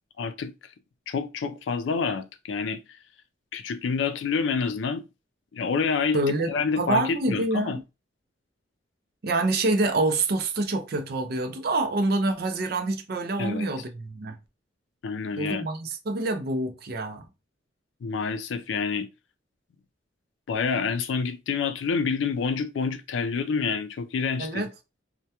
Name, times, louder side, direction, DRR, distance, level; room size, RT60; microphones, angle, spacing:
voice 1, 0.2-0.5 1.1-2.8 3.5-5.0 5.5-6.2 6.5-7.8 13.4-13.7 15.0-15.7 18.0-19.1 20.5-24.6, left 5 dB, 85° left, 0.4 m, -28 dB
voice 2, 6.1-7.8 9.2-14.4 15.4-17.3 24.4-24.7, right 2 dB, 55° right, 0.4 m, -26 dB
2.2 x 2.2 x 2.8 m
head